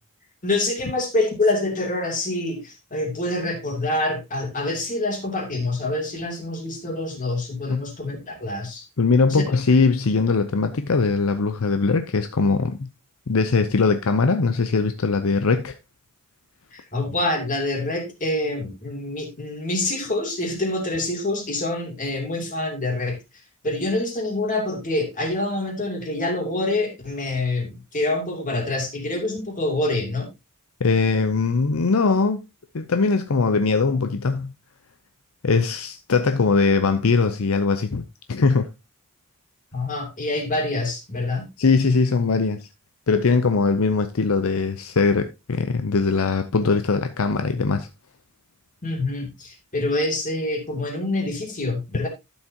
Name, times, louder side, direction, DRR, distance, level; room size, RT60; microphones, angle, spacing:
voice 1, 0.4-8.8 9.3-9.4 16.7-23.2 23.6-30.3 39.7-41.5 48.8-52.1, left 2 dB, 35° left, 3.0 m, -26 dB
voice 2, 9.0-12.9 13.3-15.7 30.8-32.4 32.7-34.5 35.4-38.0 38.3-38.7 41.6-42.7 43.1-47.9, left 4 dB, 70° left, 0.6 m, -21 dB
12.0 x 7.2 x 2.8 m
head